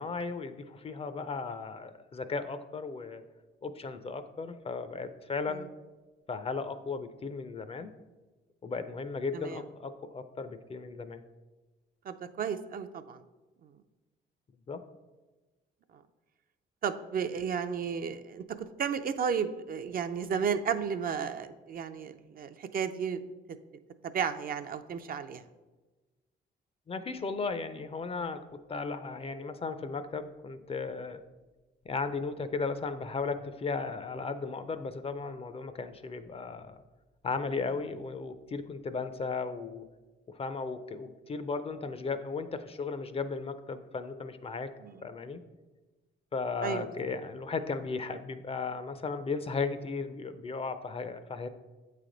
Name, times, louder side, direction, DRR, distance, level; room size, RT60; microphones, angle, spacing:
voice 1, 0.0-3.2 3.6-5.7 6.3-7.9 8.6-11.2 14.7-14.8 26.9-28.4 28.7-31.2 31.9-36.8 37.2-39.8 40.3-44.7 45.0-45.4 46.3-51.5, left 4 dB, 30° left, 11 dB, 0.4 m, -36 dB
voice 2, 12.0-13.2 15.9-16.0 16.8-23.2 24.0-25.4 44.8-45.1 46.6-46.9, right 7 dB, 50° right, 10 dB, 0.4 m, -33 dB
8.1 x 3.3 x 3.8 m, 1.2 s
cardioid pair, 90°, 20 cm